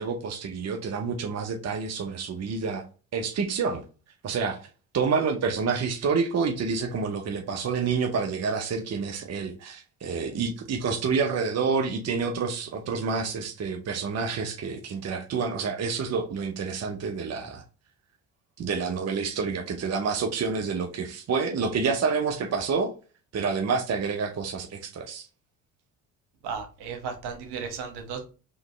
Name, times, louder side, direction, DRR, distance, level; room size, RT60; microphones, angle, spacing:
voice 1, 0.0-2.8 3.1-3.8 4.2-4.7 4.9-17.6 18.6-22.9 23.3-25.3, right 5 dB, 40° right, 0.8 m, -28 dB
voice 2, 26.4-28.2, right 6 dB, 65° right, 1.3 m, -35 dB
3.9 x 3.0 x 3.3 m
hypercardioid pair, 55°, 42 cm